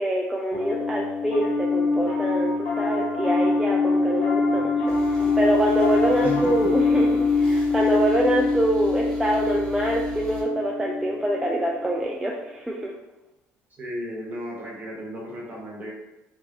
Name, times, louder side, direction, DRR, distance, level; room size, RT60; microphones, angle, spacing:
voice 1, 0.0-12.9, right 1 dB, 10° right, -2 dB, 0.3 m, -25 dB
Piano, 0.5-12.0, left 3 dB, 75° left, 1.0 m, -24 dB
sound 1, 4.9-10.4, right 5 dB, 10° left, 1.4 m, -41 dB
voice 2, 6.2-6.8 13.8-15.9, left 1 dB, 35° right, -3 dB, 0.9 m, -34 dB
3.5 x 2.0 x 2.6 m, 0.95 s
cardioid pair, 110°, 5 cm